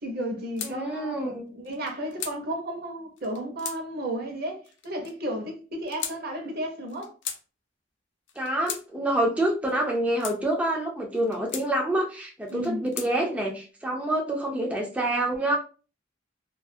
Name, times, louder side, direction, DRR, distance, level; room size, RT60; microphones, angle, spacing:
voice 1, 0.0-7.1 12.5-12.8, right 1 dB, 55° right, 0.7 m, -33 dB
sound 1, 0.6-0.8 1.6-2.4 3.2-3.8 4.6-5.1 5.9-6.2 6.9-7.4 8.3-8.8 9.7-10.4 11.2-11.7 12.5-13.1, left 8 dB, 80° left, 0.4 m, -37 dB
voice 2, 0.6-1.4 8.4-15.6, right 1 dB, 10° right, 0.3 m, -27 dB
2.3 x 2.3 x 2.6 m
head